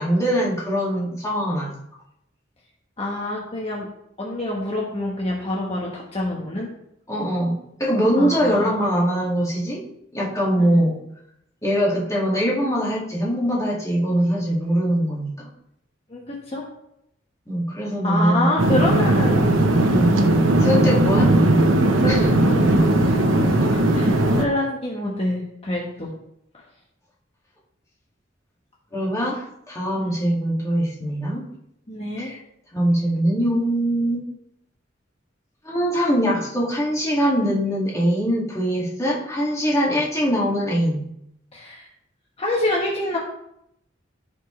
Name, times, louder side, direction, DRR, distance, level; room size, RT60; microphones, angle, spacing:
voice 1, 0.0-1.7 7.1-9.8 10.1-11.0 11.6-15.5 17.5-18.6 19.8-20.2 20.6-21.4 22.1-22.6 23.6-23.7 28.9-31.4 32.2-32.4 32.7-34.2 35.6-41.1, equal, 15° left, -5 dB, 2.3 m, -22 dB
voice 2, 3.0-3.9 4.2-6.7 8.1-8.8 16.1-16.6 18.0-19.5 22.0-22.6 23.0-23.2 23.4-26.1 30.0-30.2 31.9-32.3 41.5-41.9 42.4-43.2, left 1 dB, 30° left, -3 dB, 1.4 m, -26 dB
sound 1, 18.6-24.5, right 1 dB, 85° right, 1.0 m, -18 dB
14.5 x 5.1 x 3.3 m, 0.78 s
head